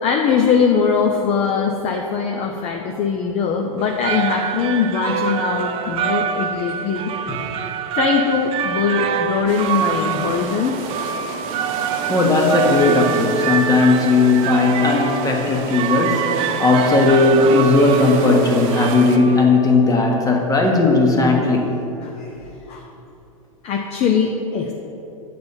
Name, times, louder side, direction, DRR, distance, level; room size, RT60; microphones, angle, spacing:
voice 1, 0.0-7.1 7.4-7.7 7.9-10.8 22.0-22.3 22.7-22.9 23.6-24.7, left 6 dB, 35° left, 2 dB, 0.6 m, -21 dB
sound 1, 3.8-19.7, right 8 dB, 30° right, 0.4 m, -25 dB
sound 2, 9.5-19.2, right 5 dB, 50° right, 0.9 m, -32 dB
voice 2, 12.1-21.7, left 3 dB, 20° left, 0 dB, 1.4 m, -16 dB
7.8 x 4.2 x 6.9 m, 3.0 s
hypercardioid pair, 105°, 18 cm